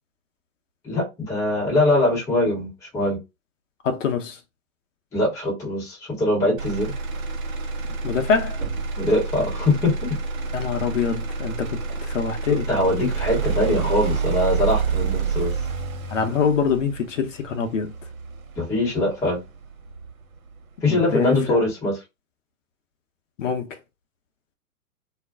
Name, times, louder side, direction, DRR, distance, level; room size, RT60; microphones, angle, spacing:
voice 1, 0.8-3.2 5.1-6.9 9.0-10.2 12.7-15.5 18.6-19.4 20.8-22.0, left 1 dB, 5° left, 0.7 m, -22 dB
voice 2, 3.8-4.4 8.0-8.6 10.5-12.7 16.1-17.9 20.8-21.6 23.4-23.8, left 6 dB, 60° left, 0.7 m, -25 dB
Motor vehicle (road), 6.6-20.6 21.1-21.6, right 5 dB, 70° right, 0.7 m, -28 dB
2.4 x 2.1 x 3.5 m
figure-of-eight pair, 120°, 43 cm